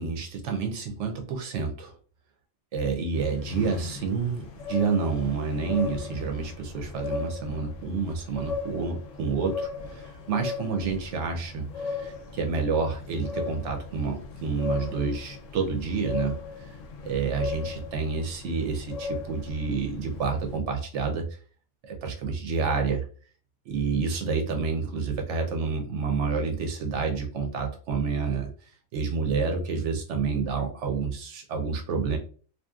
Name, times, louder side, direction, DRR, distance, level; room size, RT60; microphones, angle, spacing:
voice 1, 0.0-1.9 2.7-16.4 17.0-21.3 21.8-23.0 23.7-28.5 28.9-32.2, right 5 dB, 65° right, 3 dB, 0.8 m, -29 dB
sound 1, 3.1-20.6, left 5 dB, 70° left, 0.9 m, -37 dB
2.9 x 2.4 x 2.3 m, 0.41 s
omnidirectional pair, 1.5 m